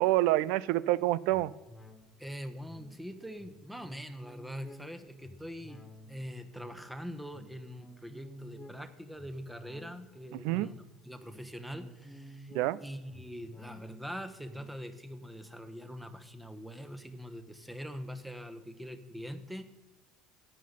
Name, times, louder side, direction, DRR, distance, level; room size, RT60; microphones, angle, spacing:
voice 1, 0.0-1.5 10.4-10.7 12.5-12.8, right 16 dB, 60° right, 20 dB, 0.4 m, -27 dB
sound 1, 1.3-17.0 17.4-17.5, equal, 15° left, 1.8 m, -53 dB
voice 2, 2.2-5.8 6.1-12.5 12.8-19.6, equal, 5° right, 9 dB, 1.2 m, -43 dB
14.0 x 10.0 x 4.1 m, 1.1 s
figure-of-eight pair, 65°, 0 cm